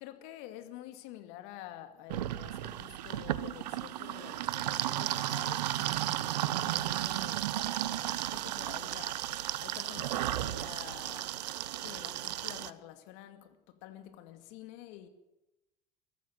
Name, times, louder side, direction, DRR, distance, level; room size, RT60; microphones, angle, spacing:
voice 1, 0.0-11.5 11.8-15.1, left 12 dB, 60° left, 2.4 m, -49 dB
sound 1, 2.1-12.7, right 13 dB, 75° right, 0.9 m, -34 dB
22.5 x 14.0 x 9.4 m
hypercardioid pair, 75°, 21 cm